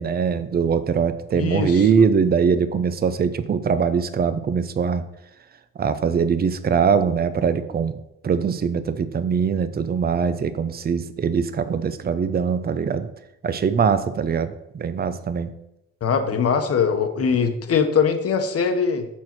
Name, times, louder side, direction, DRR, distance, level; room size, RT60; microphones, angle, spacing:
voice 1, 0.0-5.0 5.8-8.0 8.2-13.1 13.4-15.5, right 6 dB, 30° right, 12 dB, 0.6 m, -22 dB
voice 2, 1.3-1.9 16.0-19.1, left 6 dB, 50° left, 7 dB, 1.1 m, -21 dB
7.3 x 4.5 x 5.9 m, 0.86 s
cardioid pair, 90°, 30 cm